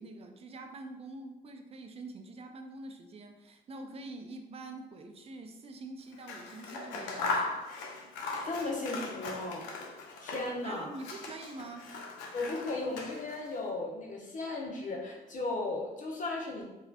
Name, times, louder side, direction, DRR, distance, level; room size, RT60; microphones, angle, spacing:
voice 1, 0.0-7.6 8.0-8.1 10.6-11.9, right 2 dB, 30° right, 5 dB, 0.4 m, -45 dB
Scissors, 6.1-10.6 10.9-13.5, left 3 dB, 65° left, 0.4 m, -38 dB
voice 2, 8.4-9.7 10.2-10.9 12.3-16.6, left 2 dB, 40° left, -2 dB, 0.8 m, -36 dB
3.1 x 2.3 x 2.4 m, 1.0 s
figure-of-eight pair, 40°, 20 cm